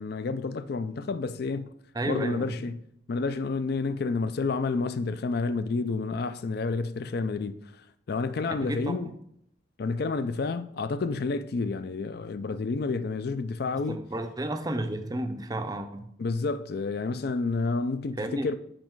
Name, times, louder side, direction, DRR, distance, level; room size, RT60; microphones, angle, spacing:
voice 1, 0.0-1.7 2.0-2.8 3.1-7.6 8.1-9.1 9.8-14.0 16.2-18.6, left 4 dB, 50° left, 0.4 m, -29 dB
voice 2, 1.9-2.6 8.5-9.1 13.9-16.1 18.2-18.6, right 1 dB, 20° right, 0.5 m, -32 dB
7.6 x 5.0 x 4.6 m
head